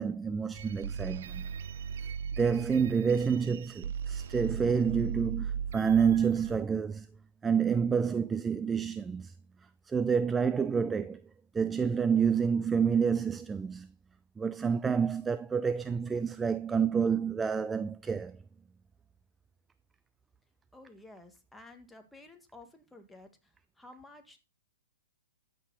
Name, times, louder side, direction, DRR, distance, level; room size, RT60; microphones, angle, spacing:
voice 1, 0.0-1.5 2.4-7.1 7.4-9.3 9.9-11.2 11.5-13.9 14.4-18.4, right 6 dB, 15° right, 0.4 m, -28 dB
sound 1, 0.5-6.6, right 7 dB, 60° right, 0.8 m, -38 dB
voice 2, 20.7-24.4, left 2 dB, 5° left, 1.8 m, -53 dB
12.5 x 7.7 x 4.1 m
hypercardioid pair, 120°, 0 cm